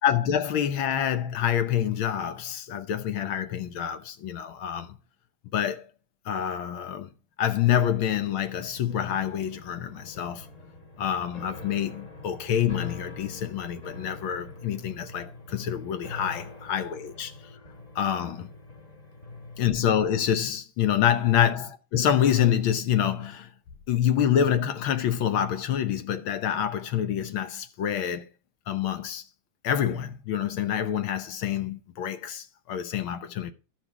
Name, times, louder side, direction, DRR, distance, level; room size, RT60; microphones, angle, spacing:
voice 1, 0.0-5.0 5.5-5.9 6.3-7.1 7.4-10.5 11.0-17.3 18.0-18.5 19.6-23.5 23.9-28.3 28.7-29.2 29.6-33.5, left 9 dB, 70° left, 1.6 m, -27 dB
sound 1, 7.8-19.7, left 2 dB, 25° left, 1.1 m, -45 dB
12.5 x 6.0 x 5.9 m
omnidirectional pair, 2.4 m